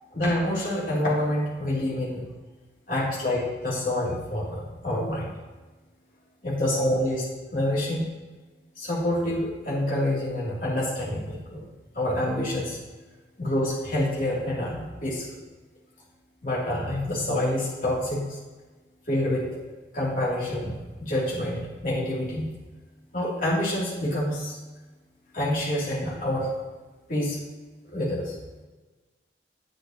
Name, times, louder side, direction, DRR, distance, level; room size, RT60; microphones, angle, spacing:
voice 1, 0.1-2.2 2.9-5.4 6.4-7.3 7.5-8.0 8.8-11.7 11.9-12.8 13.4-15.2 16.4-18.3 19.1-19.6 19.9-22.5 23.1-24.6 25.3-26.5 27.1-27.4 27.9-28.3, left 1 dB, 45° left, -7 dB, 3.0 m, -27 dB
10.5 x 7.9 x 3.0 m, 1.2 s
head